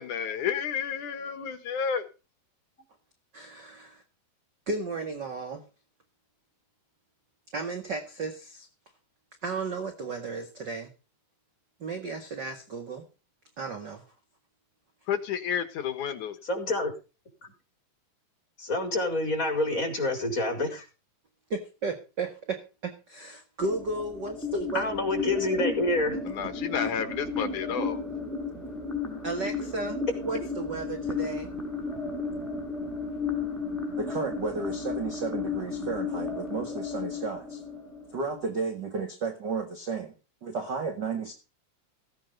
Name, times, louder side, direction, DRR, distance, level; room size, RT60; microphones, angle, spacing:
voice 1, 0.0-2.1 15.1-16.4 26.3-28.0, left 7 dB, 60° left, 2.4 m, -31 dB
voice 2, 3.3-4.0 4.7-5.6 7.5-8.7 9.4-10.9 11.8-13.1 13.6-14.0 21.5-24.9 29.2-30.0 30.2-31.5 34.0-37.6 38.1-41.3, right 4 dB, 40° right, 1.5 m, -33 dB
voice 3, 16.4-16.9 17.4-17.5 18.6-20.9 24.7-26.2, left 2 dB, 20° left, 4.7 m, -27 dB
sound 1, 23.6-38.6, left 4 dB, ahead, 4.3 m, -34 dB
16.5 x 9.2 x 5.3 m
omnidirectional pair, 4.6 m